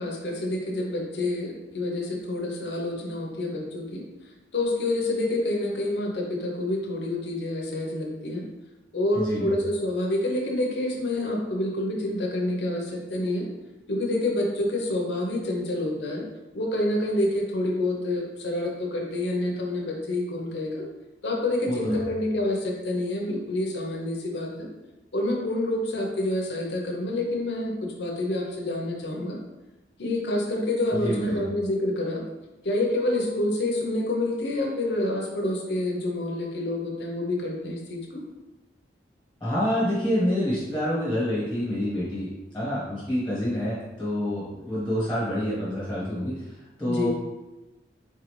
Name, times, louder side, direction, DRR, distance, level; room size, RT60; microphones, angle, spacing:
voice 1, 0.0-4.0 4.5-8.5 8.9-13.5 13.9-16.3 16.5-20.8 21.2-24.7 25.1-29.4 30.0-32.2 32.6-38.2 46.9-47.1, left 1 dB, 75° left, 0 dB, 0.9 m, -28 dB
voice 2, 9.1-9.5 21.7-22.0 31.0-31.4 39.4-42.3 42.5-47.1, equal, 5° left, -10 dB, 1.5 m, -27 dB
4.0 x 3.9 x 3.2 m, 1.0 s
head